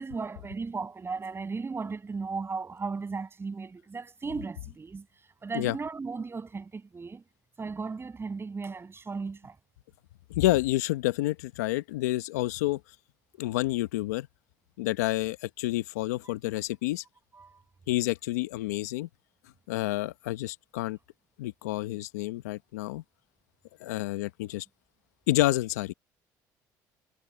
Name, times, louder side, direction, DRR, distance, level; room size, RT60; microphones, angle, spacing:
voice 1, 0.0-5.1 5.4-7.3 7.6-9.6 17.3-17.6, right 4 dB, 30° right, 7.2 m, -36 dB
voice 2, 10.3-12.8 13.4-14.3 14.8-17.0 17.9-19.1 19.7-21.0 21.4-23.0 23.8-24.6 25.3-25.9, left 17 dB, 90° left, 1.1 m, -29 dB
hypercardioid pair, 70°, 9 cm